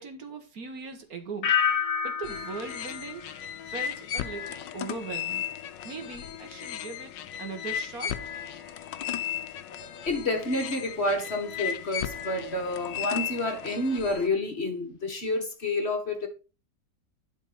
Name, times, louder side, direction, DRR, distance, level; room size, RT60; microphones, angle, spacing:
voice 1, 0.0-1.5 2.0-3.3 3.7-5.4 5.8-7.1 7.4-8.2, right 4 dB, 55° right, 1.8 m, -39 dB
sound 1, 1.4-4.3 4.6-5.1, left 7 dB, 65° left, 1.5 m, -30 dB
sound 2, 2.2-14.3, left 10 dB, 85° left, 1.4 m, -36 dB
voice 2, 10.0-16.3, left 2 dB, 40° left, 1.6 m, -29 dB
11.0 x 4.4 x 5.4 m
omnidirectional pair, 1.9 m